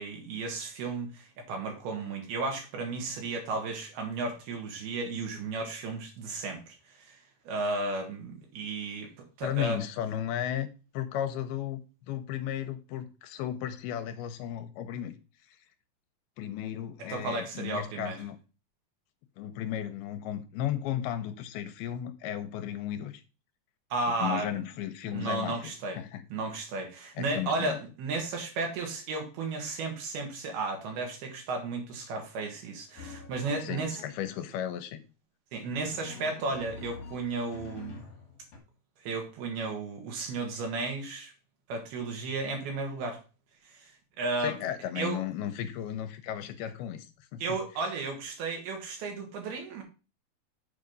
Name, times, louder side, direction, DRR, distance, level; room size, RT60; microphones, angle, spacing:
voice 1, 0.0-6.6 7.0-7.2 7.5-9.1 9.4-9.8 17.1-18.2 23.9-24.5 25.0-26.0 26.3-34.0 35.5-38.0 39.0-41.3 41.7-43.2 43.7-43.9 44.2-44.6 45.0-45.2 47.4-49.8, right 3 dB, 75° right, 3.7 m, -34 dB
voice 2, 9.4-10.7 10.9-11.8 12.1-15.2 15.5-15.6 16.4-18.4 19.4-23.2 24.2-26.2 27.2-27.8 33.6-35.0 44.4-47.6, left 11 dB, 80° left, 2.6 m, -35 dB
Drum, 33.0-34.4 35.5-38.6, left 4 dB, 45° left, 2.9 m, -46 dB
7.6 x 4.8 x 5.2 m
omnidirectional pair, 4.6 m